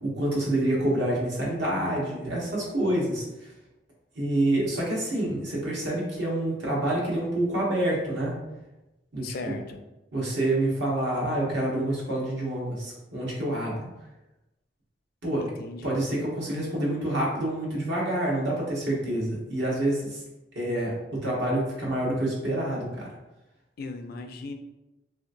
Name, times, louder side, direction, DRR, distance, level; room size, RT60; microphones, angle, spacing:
voice 1, 0.0-3.2 4.1-8.3 9.1-9.5 10.1-13.8 15.2-15.4 15.8-20.2 20.5-23.1, right 1 dB, 65° right, -4 dB, 1.0 m, -27 dB
voice 2, 9.2-9.8 15.4-16.0 23.8-24.5, left 3 dB, 55° left, 6 dB, 0.3 m, -37 dB
3.2 x 2.8 x 2.5 m, 0.98 s
head